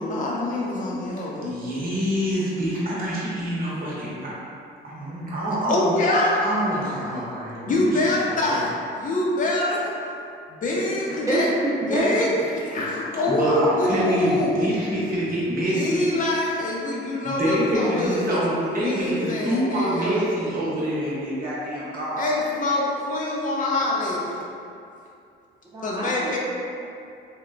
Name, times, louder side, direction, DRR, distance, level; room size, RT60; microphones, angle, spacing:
voice 1, 0.0-1.4 5.7-6.4 7.6-9.9 10.5-11.5 11.9-12.3 12.5-14.6 15.7-18.3 18.7-20.2 22.2-24.4 25.8-26.4, left 1 dB, 40° left, -3 dB, 0.6 m, -25 dB
voice 2, 0.9-1.4 11.3-12.2 25.7-26.4, right 1 dB, 15° right, -9 dB, 0.8 m, -27 dB
voice 3, 1.4-4.3 4.8-8.0 8.3-8.7 13.2-16.1 17.2-22.3, equal, 45° right, -7 dB, 0.9 m, -26 dB
3.1 x 2.1 x 2.4 m, 2.5 s
cardioid pair, 90°, 21 cm